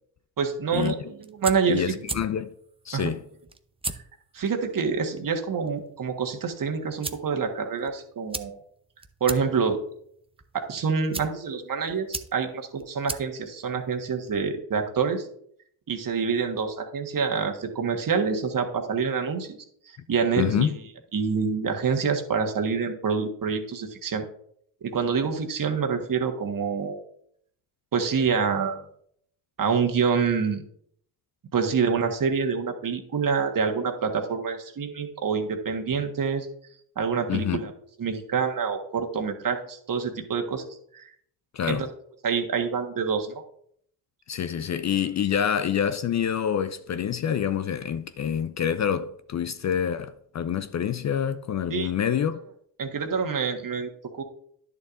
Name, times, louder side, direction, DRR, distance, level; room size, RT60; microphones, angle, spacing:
voice 1, 0.4-2.0 2.9-3.1 4.3-8.6 9.2-9.8 10.5-15.3 15.9-19.6 19.9-20.8 21.1-24.2 24.8-27.0 27.9-28.8 29.6-30.6 31.5-36.5 37.0-37.7 38.0-41.0 41.6-41.9 42.2-43.3 51.7-51.9 52.8-54.2, right 5 dB, 45° right, 1.5 m, -27 dB
sound 1, 1.0-14.4, right 3 dB, 10° right, 0.7 m, -40 dB
voice 2, 1.7-2.5 2.9-3.2 20.4-20.7 37.3-37.6 41.5-41.9 44.3-52.4, left 8 dB, 35° left, 0.5 m, -27 dB
10.5 x 6.9 x 2.6 m
hypercardioid pair, 55°, 47 cm